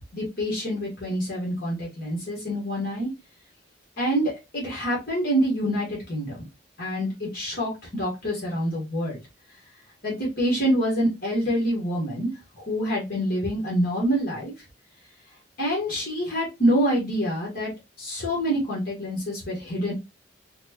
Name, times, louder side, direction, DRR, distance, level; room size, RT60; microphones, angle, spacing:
voice 1, 0.1-3.1 4.0-6.4 6.8-9.2 10.0-12.3 12.6-14.5 15.6-17.7 18.0-19.9, equal, 55° left, -4 dB, 1.4 m, -26 dB
4.2 x 2.2 x 2.9 m, 0.24 s
head